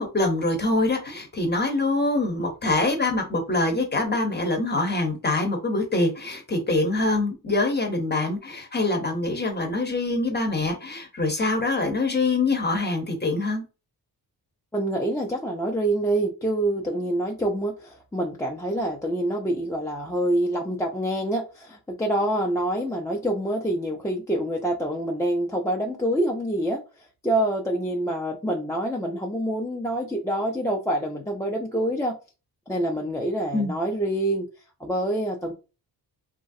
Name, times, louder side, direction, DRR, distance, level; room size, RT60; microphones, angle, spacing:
voice 1, 0.0-13.6 33.5-33.7, left 2 dB, 25° left, 0.8 m, -24 dB
voice 2, 14.7-32.2 32.7-34.5 34.8-35.5, right 1 dB, 10° left, 0.4 m, -26 dB
3.0 x 2.4 x 2.6 m
wide cardioid pair, 110°, 40 cm